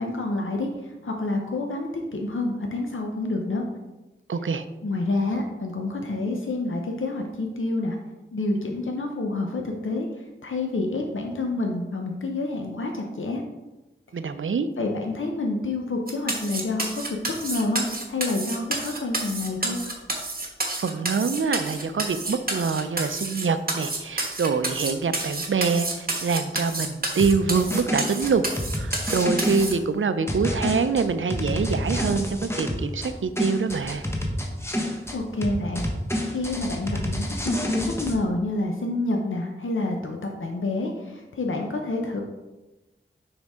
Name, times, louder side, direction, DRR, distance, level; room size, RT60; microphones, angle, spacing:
voice 1, 0.0-3.6 4.8-8.0 8.3-13.4 14.8-19.8 35.1-35.9 36.3-42.2, left 2 dB, 75° left, 2 dB, 0.7 m, -28 dB
voice 2, 4.3-4.6 14.1-14.7 20.7-28.4 28.7-34.0, right 5 dB, 70° right, 11 dB, 0.5 m, -25 dB
sound 1, 16.1-29.7, right 2 dB, 45° right, 1.3 m, -30 dB
sound 2, 27.2-29.7 30.3-33.1 33.4-35.2 35.4-38.1, left 1 dB, 10° left, 1.1 m, -28 dB
6.3 x 5.2 x 3.6 m, 1.1 s
wide cardioid pair, 50°, 21 cm